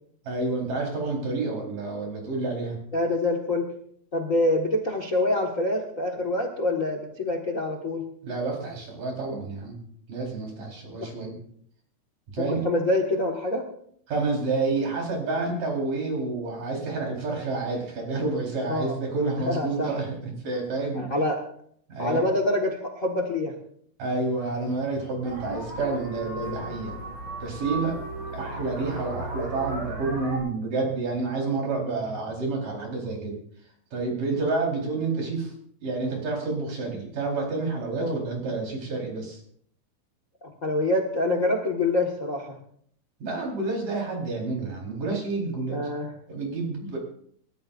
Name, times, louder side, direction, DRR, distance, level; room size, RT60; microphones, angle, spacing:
voice 1, 0.2-2.8 8.2-9.8 10.1-11.4 12.3-12.6 14.1-21.2 21.9-22.2 24.0-27.0 27.4-28.0 28.3-33.4 33.9-35.5 35.8-39.4 43.2-45.8 46.3-47.0, right 3 dB, 65° right, -1 dB, 6.0 m, -29 dB
voice 2, 2.9-3.7 4.1-8.1 11.0-11.1 12.4-13.6 18.6-19.0 19.4-20.0 20.9-21.4 22.0-23.5 38.0-38.2 40.4-42.6 45.7-46.1, left 2 dB, 35° left, 2 dB, 1.4 m, -26 dB
sound 1, 25.2-30.4, right 2 dB, 90° right, 8.4 m, -35 dB
28.0 x 14.0 x 2.6 m, 0.64 s
omnidirectional pair, 3.9 m